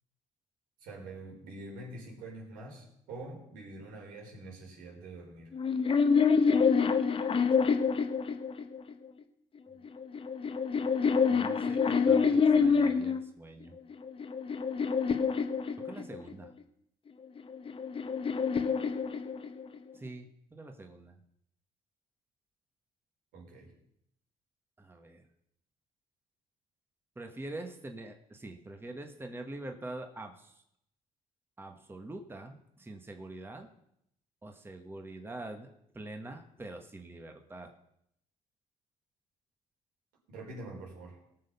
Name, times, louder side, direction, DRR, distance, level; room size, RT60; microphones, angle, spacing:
voice 1, 0.8-5.5 23.3-23.7 40.3-41.2, right 2 dB, 85° right, -1 dB, 4.4 m, -45 dB
sound 1, 5.5-8.9 9.8-13.2 13.9-16.3 17.4-19.8, left 5 dB, 40° left, 1.1 m, -27 dB
voice 2, 11.3-13.8 15.8-16.5 19.9-21.2 24.8-25.3 27.2-30.6 31.6-33.7 34.4-37.7, right 2 dB, 15° right, 4 dB, 1.4 m, -45 dB
18.5 x 6.5 x 5.5 m, 0.75 s
cardioid pair, 90°, 14 cm